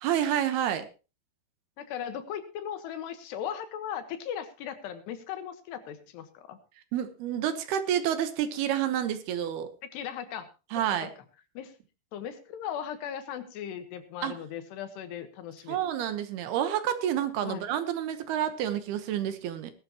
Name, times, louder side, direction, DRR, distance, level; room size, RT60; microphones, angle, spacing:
voice 1, 0.0-0.9 6.9-9.7 10.7-11.1 14.2-14.3 15.7-19.7, right 10 dB, 70° right, 10 dB, 2.9 m, -29 dB
voice 2, 1.8-6.6 9.9-10.5 10.8-11.1 11.6-11.7 12.1-15.8 17.4-17.7, left 9 dB, 75° left, 9 dB, 3.4 m, -38 dB
18.5 x 12.5 x 3.0 m, 0.31 s
omnidirectional pair, 4.9 m